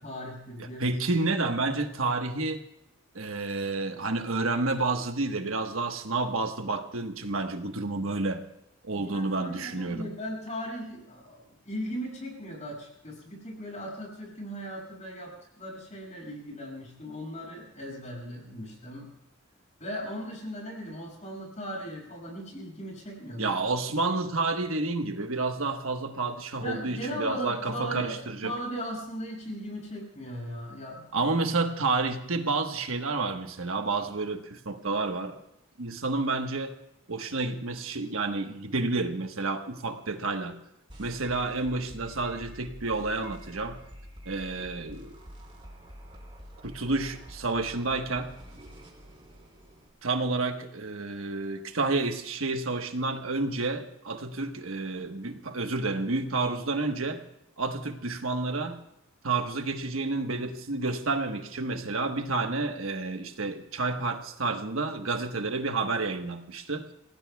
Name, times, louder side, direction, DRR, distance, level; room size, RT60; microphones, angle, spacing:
voice 1, 0.0-1.0 8.9-19.1 19.8-23.8 26.6-28.2 28.4-31.3, equal, 35° left, -1 dB, 6.8 m, -38 dB
voice 2, 0.6-2.6 3.1-8.4 8.8-10.1 23.4-28.5 31.1-35.4 35.8-36.7 37.1-40.6 41.0-43.8 44.2-45.1 46.6-48.3 50.0-57.2 57.6-58.8 59.2-66.8, right 3 dB, 85° right, 5 dB, 1.3 m, -30 dB
sound 1, 40.9-49.9, equal, 25° right, 4.0 m, -47 dB
29.0 x 18.0 x 2.3 m, 0.80 s
head